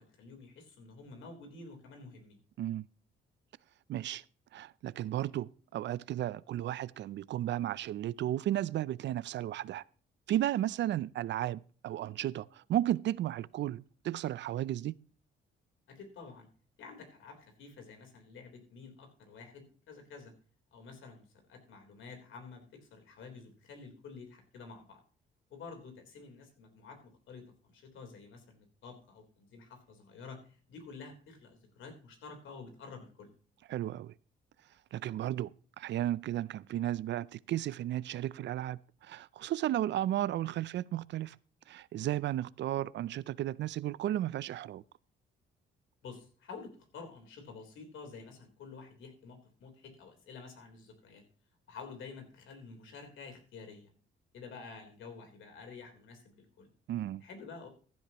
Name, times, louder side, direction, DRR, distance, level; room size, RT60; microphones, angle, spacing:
voice 1, 0.0-2.4 15.9-16.5 16.8-20.3 20.7-25.0 25.5-33.3 46.0-51.2 51.7-53.9 54.3-56.7 57.2-57.7, left 4 dB, 80° left, 3.6 m, -50 dB
voice 2, 3.9-4.2 4.5-9.8 10.3-15.0 33.7-34.1 34.9-41.4 41.7-44.8 56.9-57.2, right 13 dB, 65° right, 0.5 m, -34 dB
15.0 x 11.5 x 2.9 m
cardioid pair, 90°, 20 cm